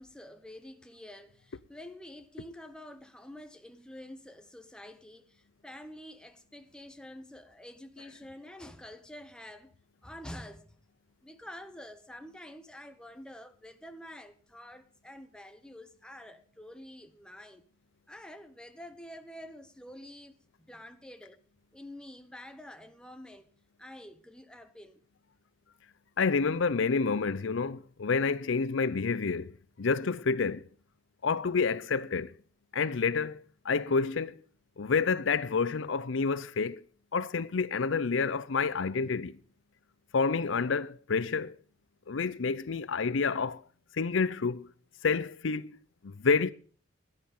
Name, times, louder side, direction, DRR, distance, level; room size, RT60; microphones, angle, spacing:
voice 1, 0.0-9.7 10.0-10.7 11.2-17.6 18.1-20.3 20.6-21.4 21.7-23.5 23.8-25.0, left 1 dB, 5° left, 1.0 m, -48 dB
voice 2, 26.2-29.5 29.8-30.6 31.2-32.3 32.7-34.4 34.8-36.8 37.1-39.3 40.1-41.5 42.1-43.6 44.0-44.7 45.0-45.7 46.0-46.5, left 5 dB, 75° left, 0.6 m, -28 dB
15.0 x 10.5 x 5.4 m
head